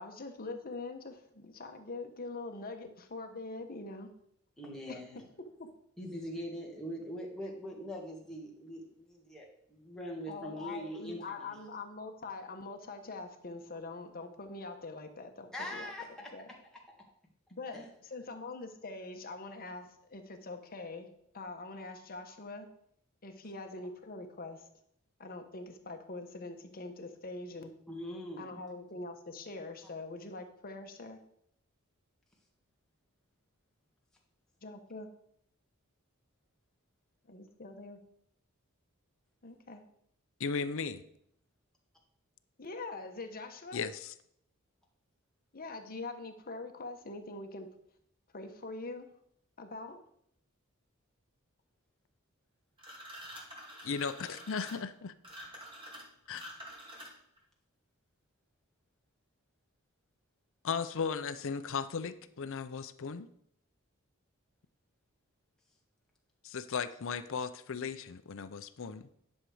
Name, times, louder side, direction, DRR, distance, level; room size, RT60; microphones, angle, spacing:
voice 1, 0.0-4.1 4.9-5.2 10.3-15.9 16.3-16.5 17.5-21.1 21.3-22.7 23.2-24.6 25.2-27.7 28.4-31.2 34.6-35.1 37.3-38.0 39.4-39.8 42.6-43.8 45.5-47.7 48.3-49.1 49.6-50.0, left 3 dB, 45° left, 6 dB, 1.2 m, -43 dB
voice 2, 4.6-5.2 6.0-11.6 15.5-16.3 16.9-17.0 17.7-17.9 27.9-28.6, equal, 5° left, -3 dB, 1.9 m, -42 dB
voice 3, 40.4-41.0 43.7-44.1 53.8-55.1 56.3-56.5 60.6-63.3 66.4-69.1, left 5 dB, 65° left, 12 dB, 0.6 m, -36 dB
sound 1, 52.8-57.4, equal, 25° right, 2.4 m, -48 dB
10.5 x 6.5 x 4.9 m, 0.71 s
head